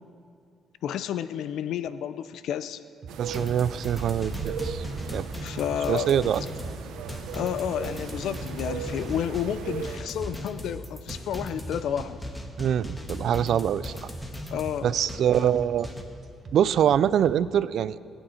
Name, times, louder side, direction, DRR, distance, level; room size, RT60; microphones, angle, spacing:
voice 1, 0.8-2.8 5.4-6.1 7.3-12.2 14.5-14.9 15.4-15.5, left 9 dB, 80° left, 13 dB, 0.5 m, -31 dB
sound 1, 3.0-17.3, right 3 dB, 45° right, 1.3 m, -44 dB
sound 2, 3.1-10.0, right 6 dB, 90° right, 0.8 m, -37 dB
voice 2, 3.2-4.9 5.1-5.3 5.9-6.4 12.6-14.1 14.8-15.9 16.5-18.0, right 9 dB, 70° right, 17 dB, 0.4 m, -24 dB
sound 3, 3.3-16.0, equal, 15° left, 1.5 m, -38 dB
22.0 x 9.1 x 4.4 m, 2.3 s
cardioid pair, 90°, 0 cm